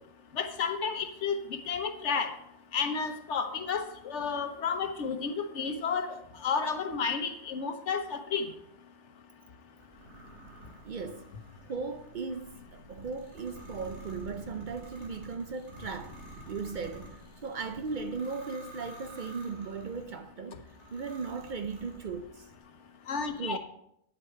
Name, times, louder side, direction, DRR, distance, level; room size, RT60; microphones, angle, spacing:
voice 1, 0.4-1.3 1.7-2.3 2.7-6.2 6.4-8.5 23.1-23.6, left 6 dB, 85° left, 1.2 m, -31 dB
sound 1, 9.8-20.1 20.7-22.3, right 1 dB, 75° right, 2.9 m, -49 dB
voice 2, 10.8-11.3 11.7-16.2 16.5-22.5 23.4-23.6, right 4 dB, 55° right, 0.6 m, -37 dB
9.0 x 7.9 x 4.4 m
omnidirectional pair, 1.2 m